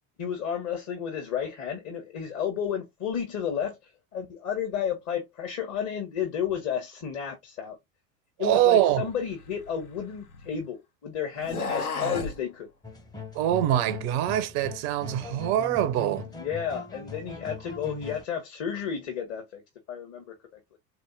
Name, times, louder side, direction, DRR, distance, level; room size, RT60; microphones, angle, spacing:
voice 1, 0.2-7.8 8.4-10.8 11.0-12.7 16.4-19.6 19.9-20.4, left 8 dB, 35° left, 1.1 m, -32 dB
voice 2, 8.4-9.1 13.3-16.3, right 12 dB, 30° right, 0.4 m, -24 dB
sound 1, 9.1-10.6 11.3-12.4, left 4 dB, 85° left, 0.7 m, -34 dB
sound 2, 12.8-18.2, left 4 dB, 10° left, 0.6 m, -40 dB
3.7 x 2.7 x 2.5 m
figure-of-eight pair, 70°, 42 cm